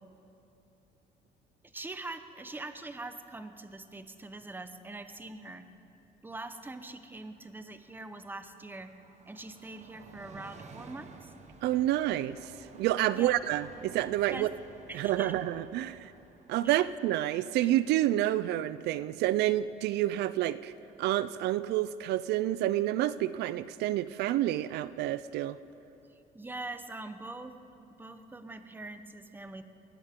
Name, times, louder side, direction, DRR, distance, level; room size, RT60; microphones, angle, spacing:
voice 1, 1.6-5.7 6.2-8.9 9.3-11.3 13.1-13.3 14.3-14.6 14.9-15.3 16.6-16.9 26.3-27.5 27.9-29.6, right 2 dB, 10° right, 9 dB, 0.9 m, -43 dB
Train, 7.2-20.5 20.8-20.9, right 4 dB, 45° right, 1.2 m, -55 dB
voice 2, 11.6-14.5 14.9-16.1 16.5-20.7 21.0-25.6, right 14 dB, 80° right, 15 dB, 0.4 m, -29 dB
21.0 x 18.0 x 3.7 m, 2.8 s
cardioid pair, 110°, 17 cm